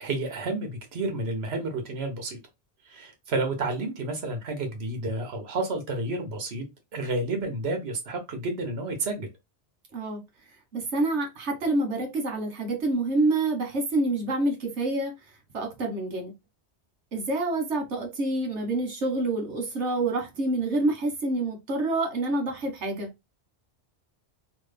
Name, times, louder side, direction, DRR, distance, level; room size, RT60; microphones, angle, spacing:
voice 1, 0.0-2.4 2.9-6.6 6.9-9.3, right 2 dB, 65° right, 1.2 m, -30 dB
voice 2, 10.7-15.1 15.5-16.3 17.1-23.1, right 2 dB, 85° right, 1.5 m, -27 dB
3.2 x 2.1 x 3.3 m
omnidirectional pair, 1.2 m